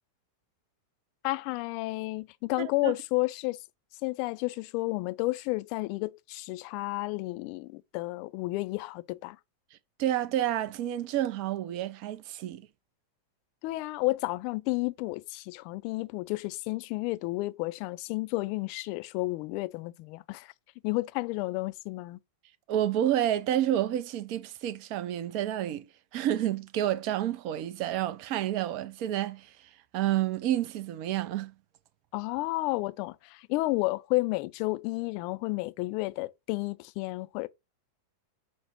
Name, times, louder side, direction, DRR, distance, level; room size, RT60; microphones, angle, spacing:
voice 1, 1.2-3.6 4.0-9.4 13.6-20.5 20.8-22.2 32.1-37.5, left 21 dB, 45° left, 0.3 m, -31 dB
voice 2, 2.6-2.9 10.0-12.7 22.7-25.9 26.1-31.5, right 12 dB, 45° right, 0.4 m, -29 dB
5.9 x 2.1 x 4.4 m
figure-of-eight pair, 90°, 0 cm